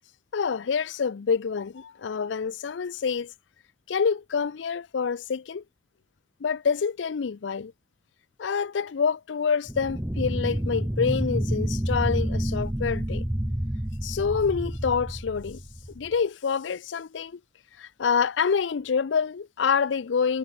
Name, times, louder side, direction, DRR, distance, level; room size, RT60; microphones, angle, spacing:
voice 1, 0.3-3.3 3.9-5.6 6.4-7.7 8.4-13.2 14.0-15.6 15.9-17.4 17.8-20.4, left 6 dB, 85° left, 0.5 m, -27 dB
sound 1, 9.7-16.1, equal, 10° right, 0.8 m, -29 dB
head